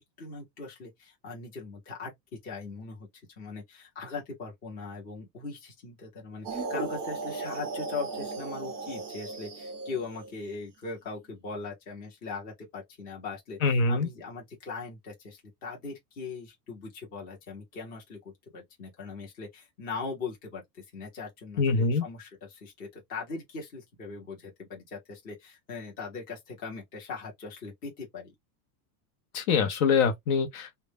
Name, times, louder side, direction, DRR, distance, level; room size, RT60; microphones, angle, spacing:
voice 1, 0.2-3.1 3.4-28.3, left 4 dB, 20° left, 0.6 m, -40 dB
sound 1, 6.4-10.4, right 3 dB, 20° right, 0.4 m, -36 dB
voice 2, 13.6-14.1 21.6-22.1 29.3-30.8, left 4 dB, 55° left, 0.6 m, -24 dB
2.1 x 2.1 x 3.2 m
supercardioid pair, 170°, 50 cm